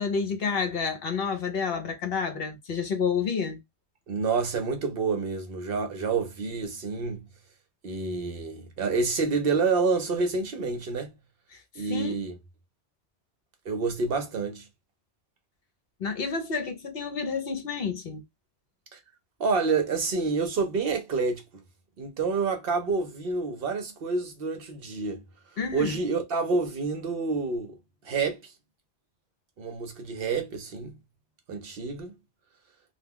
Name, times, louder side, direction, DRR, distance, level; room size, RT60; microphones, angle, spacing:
voice 1, 0.0-3.6 11.5-12.1 16.0-18.2 25.6-26.0, left 5 dB, 60° left, 0.8 m, -29 dB
voice 2, 4.1-7.3 7.8-11.1 11.8-12.3 13.7-14.7 18.9-19.0 19.4-21.4 22.0-25.2 25.7-27.8 28.0-28.5 29.6-31.0 31.5-32.1, right 4 dB, 60° right, 0.7 m, -28 dB
2.2 x 2.2 x 3.4 m
omnidirectional pair, 1.2 m